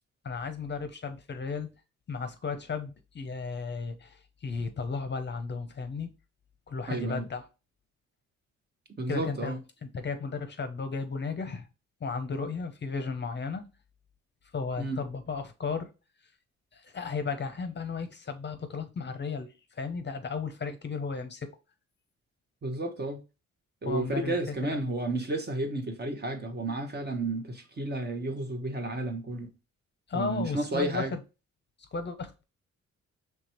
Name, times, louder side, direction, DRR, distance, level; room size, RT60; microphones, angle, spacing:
voice 1, 0.2-1.7 2.1-6.1 6.7-7.4 9.1-9.5 9.9-11.7 12.0-13.7 14.5-15.9 16.7-21.5 23.8-24.8 30.1-31.1 31.9-32.3, left 4 dB, 35° left, 0.7 m, -34 dB
voice 2, 6.9-7.3 9.0-9.6 14.8-15.0 22.6-23.2 23.8-29.5 30.1-31.1, right 2 dB, 35° right, 1.0 m, -32 dB
5.0 x 3.3 x 2.9 m
cardioid pair, 95°, 29 cm